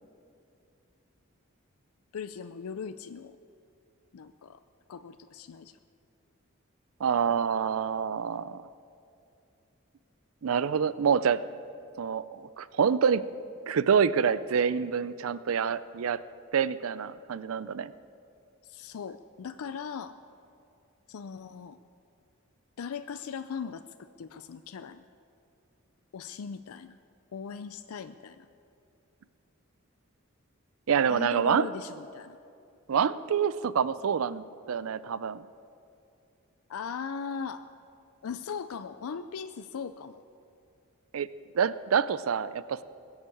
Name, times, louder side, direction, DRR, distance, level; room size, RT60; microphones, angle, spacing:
voice 1, 2.1-3.4 4.1-4.6 4.9-5.8 18.6-20.2 21.1-21.8 22.8-25.0 26.1-27.0 27.3-28.5 31.1-32.4 36.7-37.7 38.2-40.2, left 6 dB, 90° left, 11 dB, 0.4 m, -39 dB
voice 2, 7.0-8.6 10.4-11.4 12.0-13.2 13.7-16.2 16.5-17.9 30.9-31.7 32.9-35.4 41.1-41.3 41.5-42.8, right 7 dB, 75° right, 16 dB, 0.4 m, -27 dB
20.5 x 7.3 x 8.5 m, 2.6 s
head